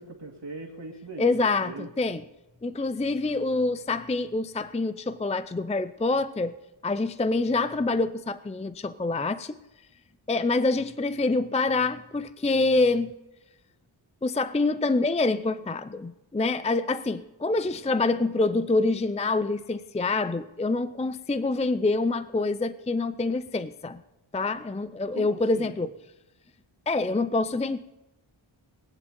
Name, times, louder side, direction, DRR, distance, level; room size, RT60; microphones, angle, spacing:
voice 1, 0.0-1.9 25.1-25.8, right 2 dB, 55° right, 0 dB, 2.5 m, -40 dB
voice 2, 1.2-2.2 2.6-6.5 6.8-9.6 10.3-13.1 14.2-24.0 24.3-25.9 26.9-27.8, left 3 dB, 15° left, 13 dB, 0.5 m, -26 dB
22.0 x 7.8 x 5.2 m, 0.98 s
wide cardioid pair, 45°, 49 cm